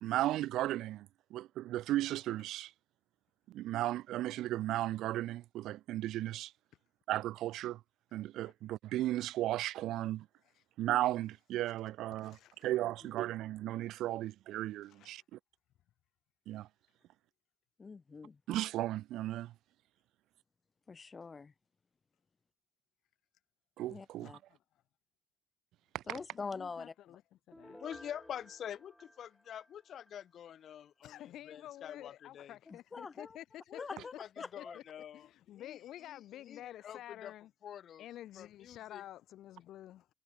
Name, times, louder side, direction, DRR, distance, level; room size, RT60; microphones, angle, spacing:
voice 1, 0.0-2.7 3.5-6.5 7.1-7.8 8.1-10.3 10.8-12.4 12.6-15.4 16.5-16.7 18.5-19.5 23.8-24.3 25.9-26.0, right 14 dB, 85° right, 0.5 m, -35 dB
voice 2, 12.2-12.6 14.8-15.2 24.2-24.6 26.3-27.2 27.5-27.8 31.0-34.0 34.6-34.8 35.1-37.5 38.0-40.1, left 13 dB, 80° left, 1.2 m, -50 dB
voice 3, 17.8-18.4 20.9-21.5 23.9-24.4 26.1-26.9 32.7-33.4 33.8-34.8, left 4 dB, 35° left, 0.8 m, -44 dB
Piano, 27.5-30.2 30.6-30.7, equal, 5° left, 6.6 m, -56 dB
voice 4, 27.7-32.6 33.7-35.8 36.1-37.3 37.6-38.1 38.3-39.0, left 9 dB, 65° left, 1.7 m, -47 dB
cardioid pair, 90°, 0 cm